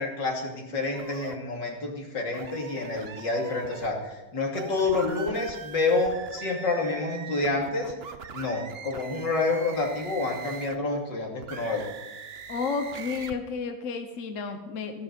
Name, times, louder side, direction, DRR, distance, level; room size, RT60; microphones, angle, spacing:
voice 1, 0.0-7.9 8.3-11.8, left 3 dB, 65° left, 0 dB, 3.3 m, -28 dB
sound 1, 0.9-1.4 2.3-3.9 4.5-10.9 11.4-13.4, right 6 dB, 45° right, 0.8 m, -42 dB
voice 2, 12.5-15.0, left 5 dB, 45° left, 6 dB, 1.3 m, -32 dB
14.5 x 13.0 x 5.4 m, 1.1 s
omnidirectional pair, 2.1 m